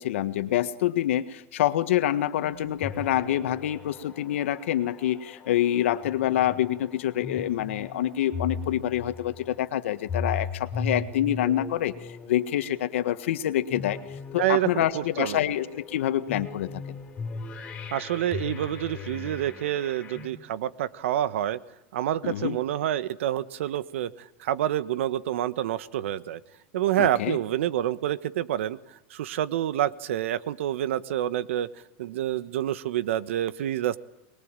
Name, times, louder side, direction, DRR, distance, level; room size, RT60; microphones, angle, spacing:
voice 1, 0.0-11.9 12.3-14.0 14.3-16.8 22.2-22.6 27.0-27.4, left 12 dB, 75° left, 11 dB, 1.6 m, -26 dB
sound 1, 1.9-20.3, left 4 dB, 20° left, 3.5 m, -38 dB
voice 2, 14.4-15.4 17.9-21.6 21.9-26.4 26.7-28.8 29.1-31.7 32.0-34.0, right 12 dB, 75° right, 15 dB, 1.3 m, -28 dB
24.5 x 21.5 x 9.0 m, 0.93 s
supercardioid pair, 175°, 7 cm